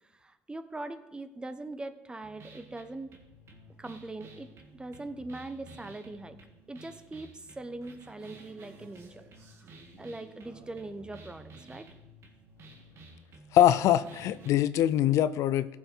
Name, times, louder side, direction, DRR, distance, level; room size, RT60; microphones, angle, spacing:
voice 1, 0.0-3.2 3.8-6.4 6.7-9.2 9.5-11.9, right 2 dB, 15° right, 11 dB, 0.9 m, -42 dB
sound 1, 2.2-14.5, right 2 dB, 55° right, 1.9 m, -52 dB
voice 2, 13.5-15.7, left 12 dB, 70° left, 15 dB, 0.4 m, -23 dB
14.5 x 5.8 x 4.4 m, 1.0 s
supercardioid pair, 80°, 6 cm